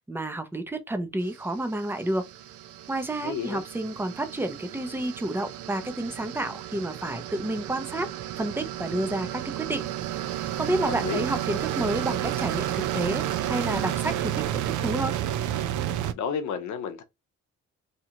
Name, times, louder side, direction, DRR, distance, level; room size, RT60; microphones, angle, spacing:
voice 1, 0.1-2.3 2.9-8.1 8.4-9.9 10.6-15.2, right 1 dB, 5° right, 0.5 m, -30 dB
sound 1, 1.4-16.1, right 12 dB, 80° right, 0.5 m, -32 dB
voice 2, 3.2-3.6 10.8-11.2 16.1-17.0, left 7 dB, 75° left, 0.7 m, -31 dB
2.9 x 2.4 x 2.8 m
cardioid pair, 90°, 30 cm